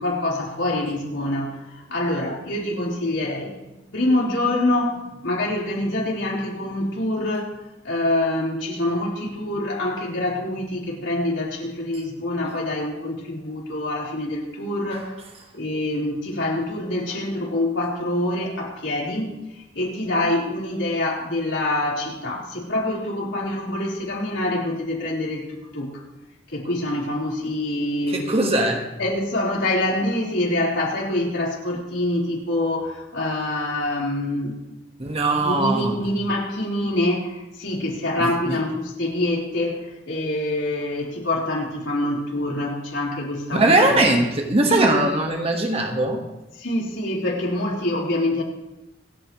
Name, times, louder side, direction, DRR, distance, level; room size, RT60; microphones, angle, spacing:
voice 1, 0.0-7.5 7.8-15.1 15.5-19.4 19.7-26.0 26.5-28.2 29.0-34.6 35.4-43.6 44.7-44.8 46.6-48.4, left 1 dB, 80° left, -4 dB, 4.1 m, -25 dB
voice 2, 28.1-28.9 35.0-35.9 38.2-38.6 43.5-46.2, right 2 dB, 30° right, 3 dB, 1.5 m, -20 dB
26.5 x 9.3 x 3.1 m, 0.98 s
head